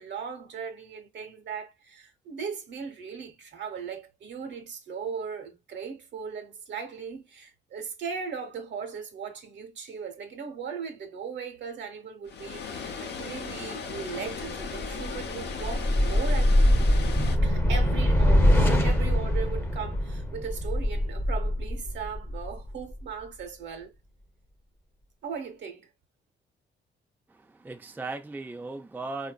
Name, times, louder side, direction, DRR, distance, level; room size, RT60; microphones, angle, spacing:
voice 1, 0.0-16.6 17.4-23.9 25.2-25.9, right 6 dB, 65° right, 1.1 m, -38 dB
Water, 12.3-17.4, left 5 dB, 55° left, 0.7 m, -37 dB
sound 1, 14.6-23.0, equal, 10° left, 0.8 m, -23 dB
voice 2, 27.3-29.3, right 3 dB, 10° right, 0.4 m, -37 dB
4.2 x 2.6 x 2.3 m
cardioid pair, 90°, 20 cm